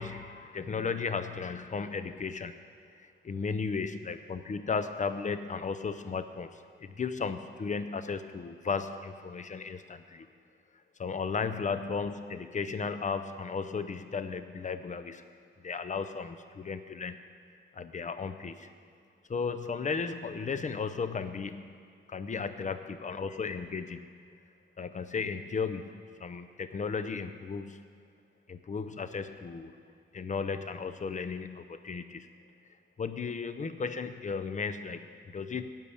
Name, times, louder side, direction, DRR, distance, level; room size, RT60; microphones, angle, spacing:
voice 1, 0.0-2.6 3.0-10.3 11.0-15.2 15.6-17.2 17.7-18.7 19.3-21.8 22.1-24.1 24.8-27.9 28.5-29.8 30.1-32.3 33.0-35.7, left 5 dB, 40° left, 10 dB, 0.6 m, -35 dB
10.5 x 5.6 x 8.6 m, 2.3 s
wide cardioid pair, 100°, 20 cm